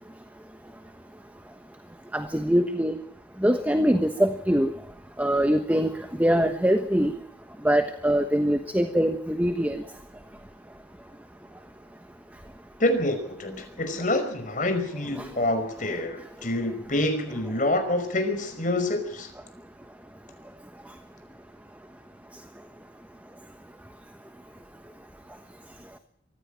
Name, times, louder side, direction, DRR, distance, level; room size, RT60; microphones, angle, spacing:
voice 1, 2.1-3.0 3.4-4.7 5.2-5.9 6.2-7.1 7.6-9.8, equal, 10° right, 7 dB, 1.2 m, -23 dB
voice 2, 12.8-19.3, left 1 dB, 45° left, 5 dB, 5.4 m, -27 dB
23.5 x 15.5 x 9.2 m, 0.70 s
head